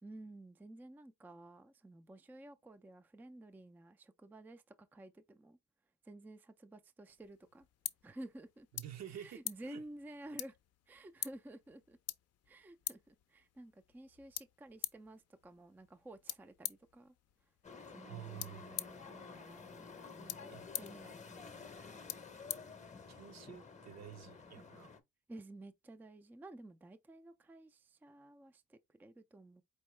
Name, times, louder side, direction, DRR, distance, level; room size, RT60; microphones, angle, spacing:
voice 1, 0.0-5.6 6.0-7.7 8.0-8.7 9.1-10.6 10.9-12.0 12.5-17.1 17.9-22.2 24.6-24.7 25.3-29.6, right 1 dB, 5° right, 0.3 m, -53 dB
sound 1, 7.1-23.4, left 12 dB, 55° left, 0.5 m, -48 dB
voice 2, 8.7-9.8 18.0-18.8 20.5-20.7 23.1-24.9, right 11 dB, 60° right, 0.7 m, -50 dB
sound 2, 17.6-25.0, left 5 dB, 25° left, 0.7 m, -52 dB
4.5 x 2.8 x 3.1 m
cardioid pair, 90°, 30 cm